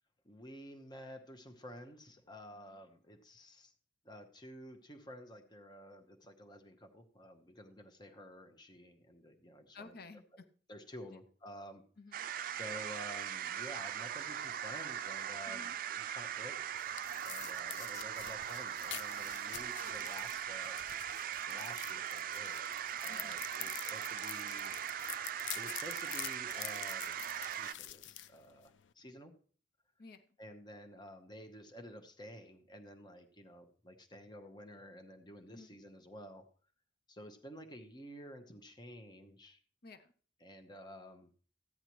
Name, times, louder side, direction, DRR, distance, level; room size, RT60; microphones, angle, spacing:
voice 1, 0.2-3.7 4.0-9.9 10.3-10.4 10.7-11.8 12.4-16.6 17.2-20.8 21.5-22.6 23.0-24.7 25.5-27.2 27.5-29.3 30.4-36.5 37.1-39.6 40.4-41.3, equal, 25° left, 6 dB, 1.0 m, -51 dB
voice 2, 9.7-10.5 12.0-12.3 15.5-15.8 19.8-20.0 23.1-23.4 30.0-30.2 35.5-35.8 39.8-40.1, left 3 dB, 60° left, 10 dB, 0.8 m, -54 dB
sound 1, 12.1-27.7, right 9 dB, 50° right, 0.4 m, -40 dB
sound 2, 16.3-28.9, left 12 dB, 85° left, 0.4 m, -48 dB
14.5 x 9.8 x 3.0 m, 0.42 s
head